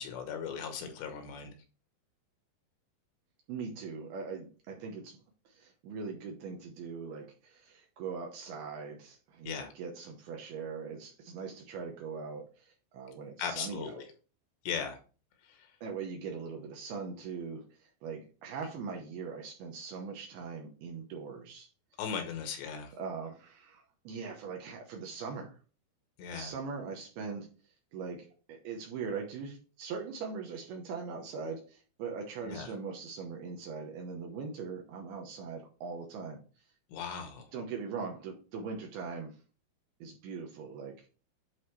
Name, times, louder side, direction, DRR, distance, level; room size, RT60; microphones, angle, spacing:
voice 1, 0.0-1.5 9.5-9.7 13.4-14.1 14.7-15.0 22.0-22.9 26.2-26.5 32.4-32.7 36.9-37.5, left 6 dB, 75° left, 6 dB, 3.2 m, -37 dB
voice 2, 3.5-5.2 5.5-14.0 15.8-21.7 22.9-25.6 26.3-27.5 27.9-36.4 37.5-39.4 40.0-41.1, right 5 dB, 70° right, 1 dB, 2.6 m, -41 dB
11.0 x 4.0 x 3.2 m, 0.36 s
omnidirectional pair, 5.2 m